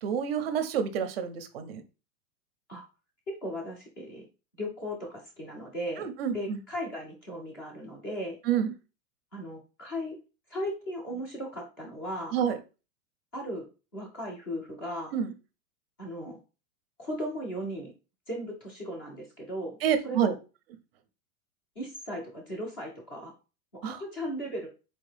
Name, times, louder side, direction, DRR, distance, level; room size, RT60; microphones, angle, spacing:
voice 1, 0.0-1.8 6.0-6.6 8.5-8.7 12.3-12.6 15.1-15.3 19.8-20.3 23.8-24.0, right 8 dB, 40° right, 10 dB, 0.5 m, -28 dB
voice 2, 3.3-4.2 4.6-8.4 9.3-10.2 10.5-12.4 13.3-13.7 13.9-15.1 16.0-16.4 17.0-17.9 18.3-19.8 20.0-20.4 21.8-23.3 23.8-24.7, equal, 15° left, 0 dB, 0.4 m, -37 dB
4.4 x 2.6 x 3.2 m, 0.31 s
supercardioid pair, 160°, 47 cm